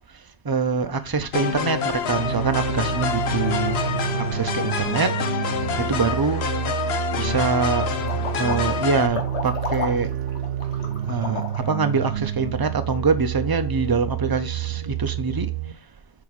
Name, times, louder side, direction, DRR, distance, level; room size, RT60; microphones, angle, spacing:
voice 1, 0.4-3.8 4.3-5.1 5.8-6.5 7.2-7.9 8.4-10.1 11.1-15.5, right 4 dB, 25° right, 0.6 m, -24 dB
sound 1, 1.3-9.1, left 6 dB, 70° left, 1.0 m, -27 dB
sound 2, 2.0-15.7, right 11 dB, 70° right, 0.8 m, -29 dB
sound 3, 8.0-11.9, left 4 dB, 85° left, 1.6 m, -32 dB
7.3 x 4.8 x 4.1 m
omnidirectional pair, 1.1 m